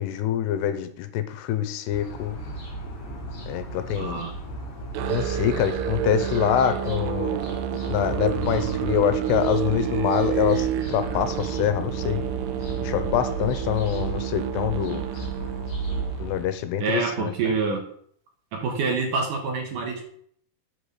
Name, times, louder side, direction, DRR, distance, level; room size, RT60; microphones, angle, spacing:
voice 1, 0.0-2.4 3.5-4.2 5.1-7.4 7.9-12.2 12.8-15.0 16.2-17.3, left 10 dB, 85° left, 10 dB, 2.7 m, -25 dB
sound 1, 1.9-16.3, right 2 dB, 45° left, 3.3 m, -35 dB
voice 2, 4.0-4.4 16.8-17.8 18.5-20.0, right 4 dB, 65° right, 2 dB, 2.4 m, -26 dB
Musical instrument, 4.9-16.5, right 11 dB, 80° right, 2.9 m, -29 dB
9.3 x 4.8 x 6.7 m, 0.63 s
omnidirectional pair, 4.8 m